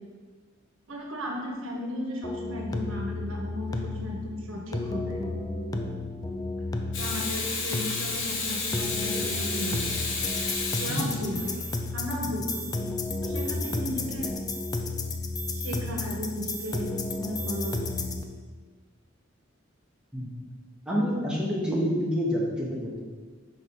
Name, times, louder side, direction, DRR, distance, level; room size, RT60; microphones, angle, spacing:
voice 1, 0.9-5.3 7.0-9.8 10.8-11.5 11.9-12.7 13.2-14.3 15.5-16.9 17.2-17.8, left 1 dB, 90° right, 0 dB, 1.3 m, -35 dB
sound 1, 2.2-18.2, left 2 dB, 20° left, 0.4 m, -32 dB
Water tap faucet / Sink (filling or washing), 6.9-11.7 14.1-14.3, left 3 dB, 65° left, 1.3 m, -31 dB
voice 2, 20.9-23.0, equal, 5° right, -5 dB, 1.3 m, -27 dB
5.1 x 4.8 x 5.6 m, 1.4 s
head